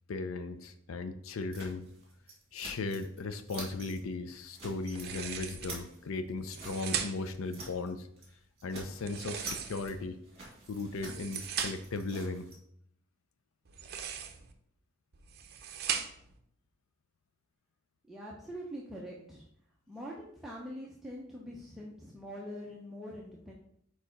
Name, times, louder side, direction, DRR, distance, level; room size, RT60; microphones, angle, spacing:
voice 1, 0.1-1.9 2.5-8.1 8.6-10.2 10.7-12.5, left 3 dB, 80° left, 9 dB, 0.5 m, -37 dB
sound 1, 1.5-3.2 3.5-4.0 4.3-5.1 5.4-7.9 8.2-8.3 8.6-12.6, right 3 dB, 30° right, 2.0 m, -47 dB
sound 2, 4.9-5.8 6.4-7.4 9.0-10.1 10.9-12.0 13.6-14.5 15.1-16.3, right 8 dB, 50° right, 0.6 m, -38 dB
voice 2, 18.0-19.5 19.9-23.5, equal, ahead, -4 dB, 0.6 m, -44 dB
4.7 x 4.5 x 5.1 m, 0.69 s
head